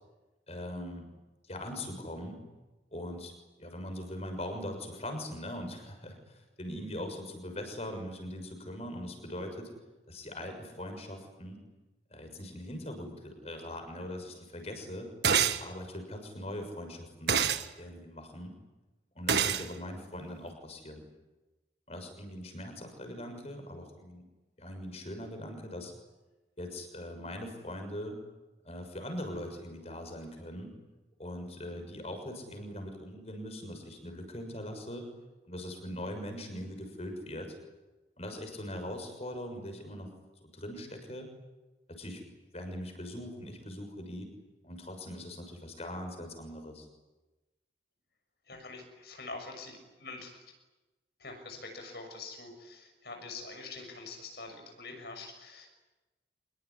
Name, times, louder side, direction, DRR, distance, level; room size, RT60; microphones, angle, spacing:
voice 1, 0.5-1.0 1.4-2.4 2.9-3.3 3.6-9.7 10.1-11.6 12.1-15.1 15.6-17.4 17.8-18.5 19.1-21.0 21.9-24.2 24.6-25.9 26.6-28.2 28.6-30.7 31.2-35.1 35.4-37.6 38.2-40.1 40.4-41.3 41.9-42.2 42.5-44.3 44.6-46.9, left 1 dB, 35° left, 5 dB, 6.5 m, -41 dB
sound 1, 15.2-15.6 17.3-17.6 19.3-19.6, right 7 dB, 70° right, 1.6 m, -26 dB
voice 2, 48.5-50.4 51.2-55.7, left 3 dB, 65° left, 4 dB, 6.7 m, -45 dB
26.0 x 22.5 x 9.9 m, 1.1 s
head